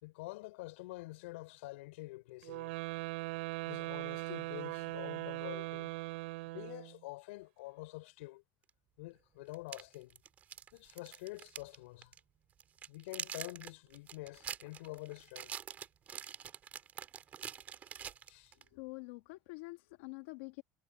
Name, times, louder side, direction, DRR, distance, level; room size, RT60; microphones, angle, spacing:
voice 1, 0.0-2.8 3.7-5.9 6.5-8.4 9.0-10.2 10.7-12.1 12.9-15.6 18.3-18.5, left 21 dB, 85° left, 4.7 m, -47 dB
sound 1, 2.4-7.0, right 21 dB, 75° right, 4.0 m, -40 dB
sound 2, 8.7-8.8 9.5-11.8 12.0-12.2 12.6-18.7, right 9 dB, 25° right, 4.8 m, -46 dB
voice 2, 18.7-20.6, left 25 dB, 70° left, 1.5 m, -46 dB
cardioid pair, 175°, 6 cm